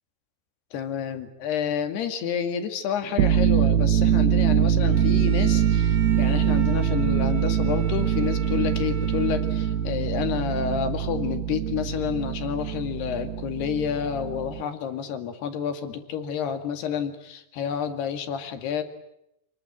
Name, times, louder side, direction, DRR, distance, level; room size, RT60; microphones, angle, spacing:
voice 1, 0.7-18.8, left 8 dB, 60° left, 8 dB, 4.0 m, -29 dB
sound 1, 3.1-14.6, right 9 dB, 70° right, 3.0 m, -23 dB
Bowed string instrument, 4.8-10.1, right 5 dB, 50° right, 3.4 m, -42 dB
29.5 x 21.5 x 8.8 m, 0.81 s
omnidirectional pair, 5.6 m